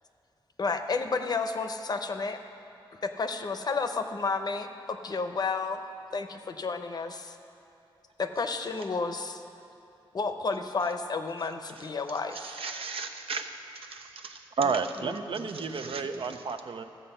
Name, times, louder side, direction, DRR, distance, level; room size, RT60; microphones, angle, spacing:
voice 1, 0.6-2.4 2.9-5.8 6.1-7.4 8.2-9.4 10.1-12.5 15.0-16.4, left 4 dB, 45° left, 7 dB, 0.7 m, -32 dB
voice 2, 12.3-13.5 13.7-14.5 15.5-16.3, right 4 dB, 75° right, 4 dB, 0.8 m, -39 dB
voice 3, 14.6-16.8, right 5 dB, 60° right, 8 dB, 0.5 m, -30 dB
14.5 x 7.5 x 5.5 m, 2.7 s
wide cardioid pair, 125°, 10 cm